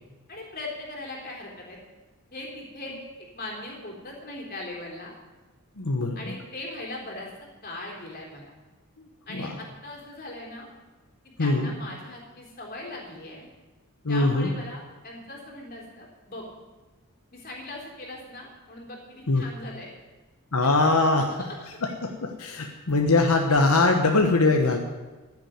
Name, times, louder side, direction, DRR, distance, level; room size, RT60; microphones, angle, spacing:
voice 1, 0.3-1.8 2.3-5.1 6.2-7.3 7.6-8.5 9.3-10.7 11.4-13.5 14.1-16.5 17.3-19.9 20.6-20.7 21.4-21.5, left 2 dB, 40° left, -1 dB, 3.7 m, -39 dB
voice 2, 5.8-6.3 9.0-9.6 11.4-11.7 14.0-14.5 19.3-19.4 20.5-21.5 21.8-24.8, left 3 dB, 80° left, 3 dB, 1.2 m, -22 dB
14.5 x 7.5 x 9.4 m, 1.2 s
head